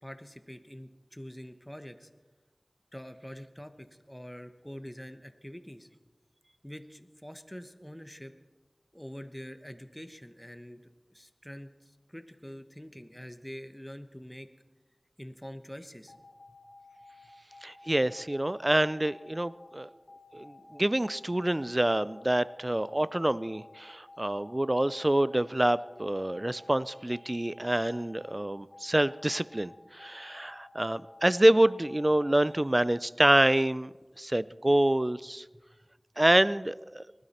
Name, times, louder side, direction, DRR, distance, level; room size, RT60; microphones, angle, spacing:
voice 1, 0.0-2.1 2.9-5.9 6.6-8.3 8.9-10.8 11.1-14.5 15.2-16.1 35.5-35.6, equal, 10° left, 8 dB, 1.0 m, -45 dB
sound 1, 16.1-32.6, left 3 dB, 80° left, 2.1 m, -54 dB
voice 2, 17.6-19.9 20.3-35.4 36.2-37.0, right 1 dB, 35° right, 17 dB, 0.4 m, -27 dB
19.5 x 12.5 x 4.3 m, 1.2 s
wide cardioid pair, 40°, 0 cm